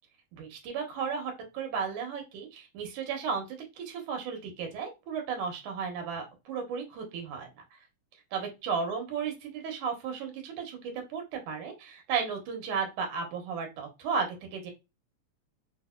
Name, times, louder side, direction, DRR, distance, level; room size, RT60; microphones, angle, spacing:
voice 1, 0.3-7.8 8.3-14.7, right 6 dB, 85° right, 3 dB, 2.6 m, -34 dB
5.3 x 2.2 x 2.3 m, 0.25 s
omnidirectional pair, 3.4 m